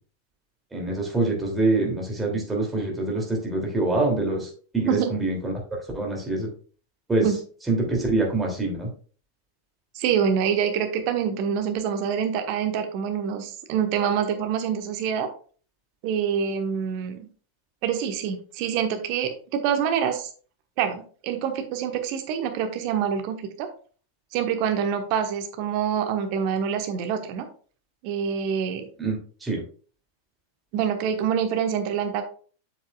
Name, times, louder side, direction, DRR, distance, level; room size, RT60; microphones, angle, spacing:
voice 1, 0.7-4.5 4.7-5.5 5.9-6.5 7.1-7.3 7.7-8.9 29.0-29.2 29.4-29.6, right 2 dB, 10° right, 0 dB, 2.7 m, -25 dB
voice 2, 9.9-15.3 16.0-17.3 17.8-20.3 20.8-23.7 24.3-27.4 28.0-28.9 30.7-32.2, right 8 dB, 45° right, 6 dB, 1.2 m, -26 dB
7.6 x 7.2 x 2.4 m, 0.41 s
figure-of-eight pair, 90°, 0 cm